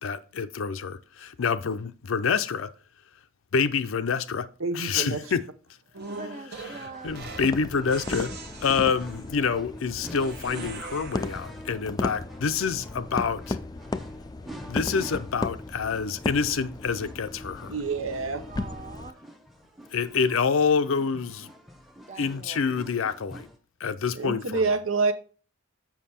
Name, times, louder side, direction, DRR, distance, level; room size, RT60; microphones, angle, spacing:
voice 1, 0.0-2.7 3.5-4.4 4.7-5.4 6.8-8.3 8.6-13.6 14.7-17.7 19.9-21.5 22.2-23.5 23.8-24.6, left 5 dB, 75° left, 0.5 m, -27 dB
voice 2, 4.6-5.2 17.7-18.4 24.1-25.1, right 4 dB, 75° right, 0.9 m, -27 dB
voice 3, 5.9-7.2 18.4-19.2 22.1-22.6, right 3 dB, 35° right, 0.8 m, -43 dB
sound 1, 5.9-7.6 7.9-9.4 10.2-11.6, right 4 dB, 55° right, 1.2 m, -41 dB
sound 2, 6.9-23.6, equal, ahead, 0.8 m, -48 dB
sound 3, 7.1-19.1, left 2 dB, 20° left, 0.4 m, -36 dB
7.2 x 5.8 x 4.2 m
head